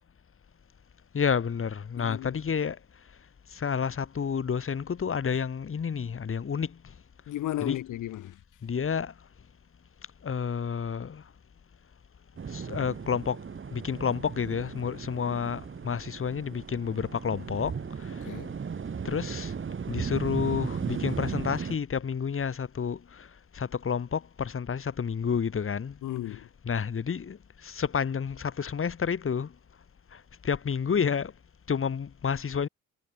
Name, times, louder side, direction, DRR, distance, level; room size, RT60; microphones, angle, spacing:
voice 1, 1.1-2.8 3.5-6.8 7.6-7.8 8.6-9.1 10.2-11.2 12.5-13.4 13.7-18.2 19.1-19.5 19.9-23.3 23.5-26.0 26.3-29.5 30.1-31.3 31.7-32.7, left 6 dB, 45° left, 6.9 m, -30 dB
voice 2, 2.0-2.4 7.3-8.4 18.2-18.6 20.8-20.9 26.0-26.5, left 13 dB, 80° left, 4.7 m, -35 dB
sound 1, 12.4-21.8, right 6 dB, 40° right, 6.3 m, -36 dB
cardioid pair, 90°, 30 cm